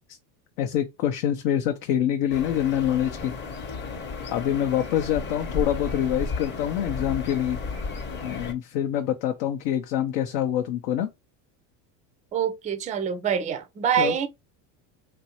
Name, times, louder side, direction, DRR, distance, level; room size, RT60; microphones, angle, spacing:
voice 1, 0.6-3.3 4.3-7.6 8.2-11.1 14.0-14.1, left 10 dB, 70° left, 0.7 m, -25 dB
sound 1, 2.3-8.5, left 4 dB, 25° left, 0.7 m, -33 dB
voice 2, 12.3-14.3, right 8 dB, 15° right, 0.4 m, -25 dB
3.0 x 2.6 x 2.9 m
supercardioid pair, 105°, 47 cm